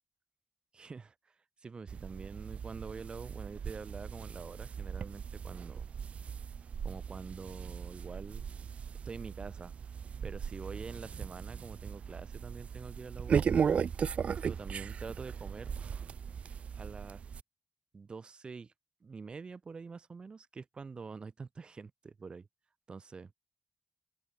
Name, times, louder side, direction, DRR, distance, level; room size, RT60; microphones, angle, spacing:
voice 1, 0.7-1.1 1.6-5.9 6.8-8.4 9.0-9.7 10.2-13.7 14.3-15.7 16.7-17.2 17.9-18.7 19.0-22.5 22.9-23.3, right 4 dB, 50° right, 1.7 m, -46 dB
sound 1, 1.9-17.4, right 7 dB, 75° right, 1.1 m, -37 dB
open air
wide cardioid pair, 100°, 2 cm